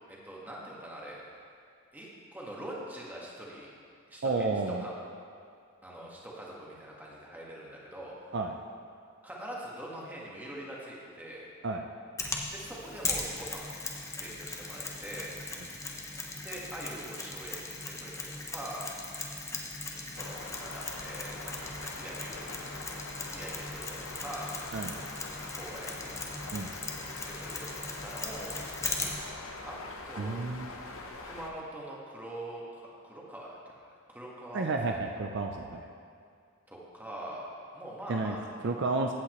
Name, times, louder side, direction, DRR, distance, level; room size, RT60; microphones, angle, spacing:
voice 1, 0.1-1.2 1.9-3.7 4.1-4.9 5.8-8.1 9.2-11.5 12.5-13.8 14.2-15.3 16.4-18.9 20.1-22.5 23.3-24.6 25.5-26.1 27.1-29.0 29.6-29.8 30.1-30.4 31.2-35.0 36.7-37.5 37.7-38.7, right 1 dB, 10° right, -5 dB, 1.6 m, -43 dB
voice 2, 4.2-4.9 8.3-8.5 11.6-11.8 24.7-24.9 26.5-26.7 30.2-30.7 34.5-35.9 38.1-38.4 38.6-39.1, right 3 dB, 55° right, 3 dB, 0.5 m, -31 dB
Mechanisms, 12.2-29.3, left 3 dB, 15° left, 0.8 m, -39 dB
sound 1, 20.2-31.5, left 2 dB, 65° left, 1.0 m, -44 dB
15.5 x 8.6 x 3.1 m, 2.3 s
head